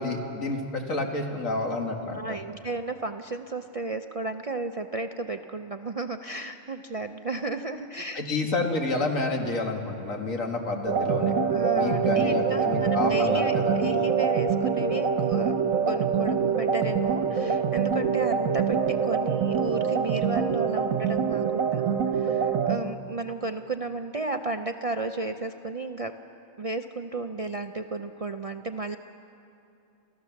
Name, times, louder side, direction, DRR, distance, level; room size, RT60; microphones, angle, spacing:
voice 1, 0.0-2.4 8.1-11.3 11.7-13.8, left 3 dB, 80° left, 2 dB, 2.3 m, -29 dB
voice 2, 2.1-8.5 11.5-26.2 26.6-29.0, right 3 dB, 55° right, 6 dB, 0.4 m, -33 dB
sound 1, 10.9-22.8, right 6 dB, 75° right, 1.4 m, -25 dB
29.0 x 14.5 x 7.1 m, 2.7 s
omnidirectional pair, 1.4 m